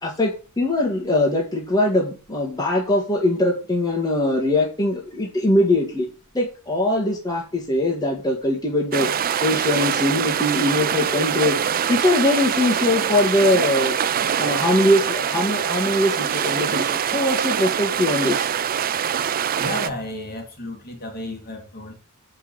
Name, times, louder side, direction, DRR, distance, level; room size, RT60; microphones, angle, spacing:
voice 1, 0.0-6.1 6.3-9.1 9.4-11.6 11.9-14.0 14.4-18.5, left 1 dB, 15° left, 1.9 m, -21 dB
sound 1, 8.9-19.9, right 8 dB, 40° right, 0.4 m, -24 dB
voice 2, 19.6-21.9, left 1 dB, 45° left, 2.6 m, -32 dB
7.2 x 5.8 x 7.2 m
head